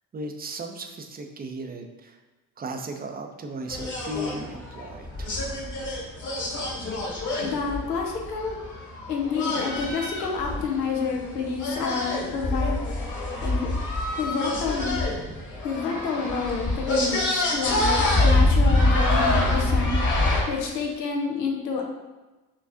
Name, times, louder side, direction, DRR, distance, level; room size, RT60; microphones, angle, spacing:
voice 1, 0.1-2.2 2.6-5.3, right 1 dB, 20° right, 4 dB, 0.6 m, -36 dB
sound 1, 3.7-20.4, left 2 dB, 35° left, 1.4 m, -26 dB
voice 2, 7.4-8.6 9.1-12.9 13.4-13.7 14.2-15.0 15.6-20.0 20.5-21.8, left 5 dB, 80° left, 1 dB, 0.8 m, -29 dB
6.1 x 3.2 x 2.5 m, 1.1 s
figure-of-eight pair, 45°, 49 cm